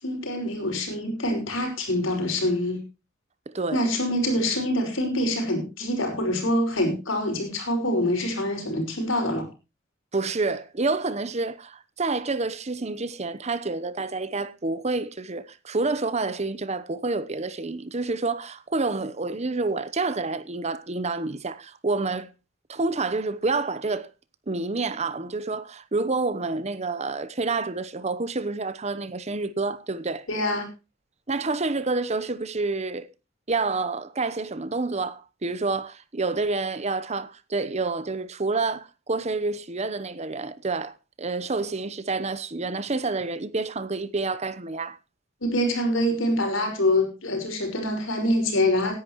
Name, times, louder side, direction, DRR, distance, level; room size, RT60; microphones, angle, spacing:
voice 1, 0.0-2.8 3.7-9.5 30.3-30.7 45.4-48.9, left 1 dB, 85° left, 5.5 m, -25 dB
voice 2, 3.5-3.8 10.1-22.3 22.7-24.1 24.5-30.2 31.3-33.1 33.5-45.0, right 3 dB, 35° right, 0.9 m, -28 dB
18.0 x 10.5 x 3.1 m
head